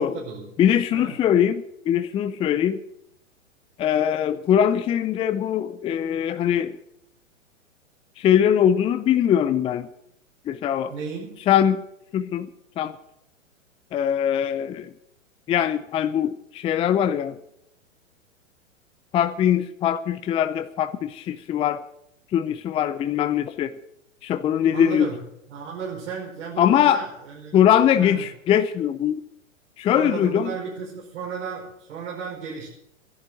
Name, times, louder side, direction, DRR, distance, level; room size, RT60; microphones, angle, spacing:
voice 1, 0.0-0.5 0.9-1.1 10.9-11.4 24.7-25.2 25.5-27.6 27.9-28.2 29.9-32.7, right 6 dB, 65° right, 4.9 m, -34 dB
voice 2, 0.6-2.8 3.8-6.8 8.2-9.9 10.5-10.9 11.5-11.8 12.1-12.5 12.8-13.0 13.9-14.9 15.5-17.4 19.1-21.8 22.3-23.7 24.2-25.1 26.6-27.0 27.5-29.2 29.8-30.5, left 9 dB, 15° left, 0.5 m, -21 dB
14.5 x 11.5 x 7.5 m
hypercardioid pair, 110°, 39 cm